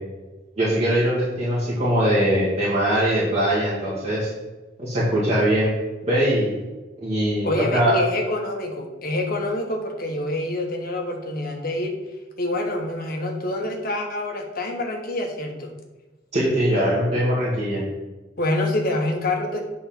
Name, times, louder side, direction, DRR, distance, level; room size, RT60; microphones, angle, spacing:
voice 1, 0.6-4.3 4.8-5.7 6.1-6.6 7.0-8.0 16.3-17.8, equal, 35° right, -9 dB, 2.0 m, -21 dB
voice 2, 7.4-11.9 12.4-15.7 18.4-19.6, left 1 dB, 50° left, 3 dB, 1.2 m, -26 dB
8.0 x 4.2 x 5.9 m, 1.2 s
head